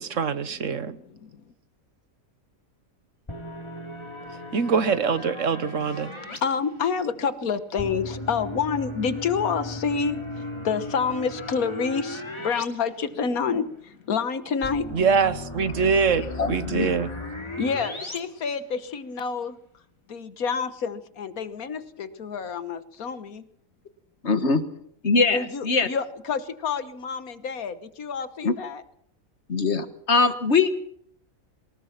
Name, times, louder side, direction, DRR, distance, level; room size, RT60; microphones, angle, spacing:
voice 1, 0.0-1.0 4.5-6.1 14.9-17.1, right 5 dB, 65° right, 1.4 m, -24 dB
voice 2, 0.8-1.5 6.4-14.9 16.2-16.3 16.8-16.9 17.5-19.6 20.1-23.4 25.3-28.8, left 6 dB, 85° left, 1.7 m, -28 dB
sound 1, 3.3-6.4 7.8-12.6 13.0-13.1 14.6-18.2, left 2 dB, 20° left, 2.6 m, -36 dB
voice 3, 16.4-16.9 24.2-24.6 25.0-25.9 28.4-28.5 29.5-30.7, left 4 dB, 50° left, 1.9 m, -22 dB
23.0 x 19.5 x 5.9 m
omnidirectional pair, 1.5 m